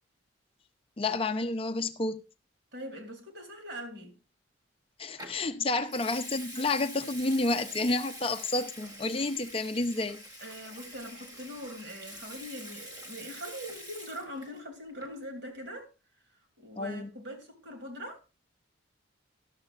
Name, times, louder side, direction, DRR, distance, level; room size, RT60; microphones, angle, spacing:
voice 1, 1.0-2.2 5.0-10.2 16.8-17.1, left 2 dB, 30° left, 0.5 m, -30 dB
voice 2, 2.7-4.1 10.4-15.9 16.6-18.2, equal, 55° right, 2.7 m, -42 dB
Water tap faucet / Sink (filling or washing) / Liquid, 5.2-5.4 5.9-14.6 14.9-15.2, equal, 20° right, 1.3 m, -46 dB
13.0 x 12.0 x 2.4 m
head